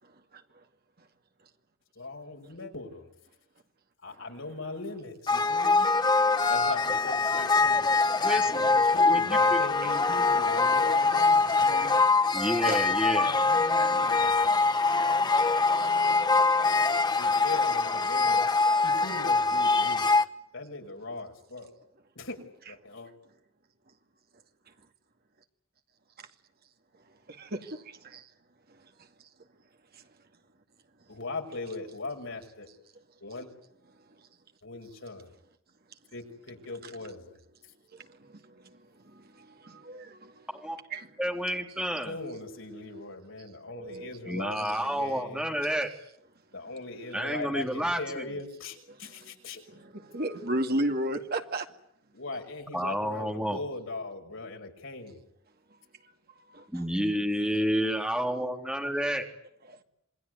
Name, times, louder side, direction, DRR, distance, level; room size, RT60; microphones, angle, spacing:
voice 1, 1.9-3.1 4.0-5.9 6.5-7.9 8.3-11.9 12.8-14.6 17.1-18.4 18.8-20.1 20.5-21.7 22.1-22.4 22.7-23.1 31.1-32.7 33.2-33.5 34.6-35.3 36.1-37.4 37.6-37.7 42.0-45.5 46.5-49.6 52.1-55.2, left 2 dB, 75° left, 3 dB, 5.9 m, -40 dB
sound 1, 5.3-20.2, left 3 dB, 20° left, 1.1 m, -24 dB
voice 2, 6.2-6.5 8.1-8.3 9.8-9.9 12.7-12.8 15.8-15.9 26.2-26.3 27.3-28.3 29.0-29.1 29.9-30.0 37.9-38.8 39.0-40.5 40.9-41.1 43.7-44.1 44.6-44.7 49.0-49.3 49.7-51.7 56.5-56.7 57.0-57.1 59.7-59.8, right 1 dB, 50° right, 5 dB, 2.3 m, -35 dB
voice 3, 8.2-8.6 9.1-9.6 12.3-13.4 40.5-40.8 41.2-42.2 44.3-45.9 47.1-48.0 52.7-53.6 56.7-59.2, equal, 5° right, 2 dB, 3.6 m, -30 dB
27.5 x 20.5 x 9.6 m, 0.74 s
head